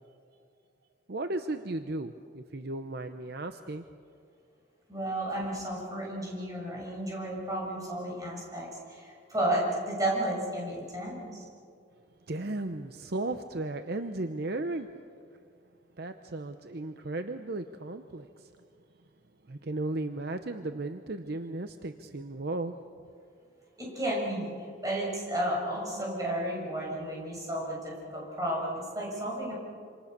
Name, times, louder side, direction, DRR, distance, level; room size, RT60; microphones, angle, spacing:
voice 1, 1.1-3.8 12.3-14.9 16.0-18.5 19.5-22.7, right 2 dB, 55° right, 8 dB, 0.8 m, -35 dB
voice 2, 4.9-11.4 23.8-24.5 24.8-29.5, right 1 dB, 20° right, -3 dB, 7.0 m, -32 dB
27.5 x 27.0 x 6.8 m, 2.3 s
head